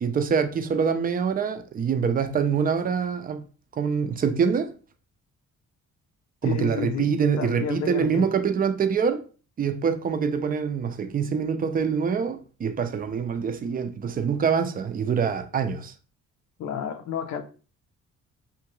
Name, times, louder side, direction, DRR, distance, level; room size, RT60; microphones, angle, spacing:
voice 1, 0.0-3.4 3.7-4.7 6.4-9.3 9.6-15.9, right 6 dB, 30° right, 0.4 m, -25 dB
voice 2, 6.4-8.3 16.6-17.4, left 7 dB, 65° left, 0.6 m, -31 dB
2.7 x 2.3 x 3.0 m
cardioid pair, 90°, 30 cm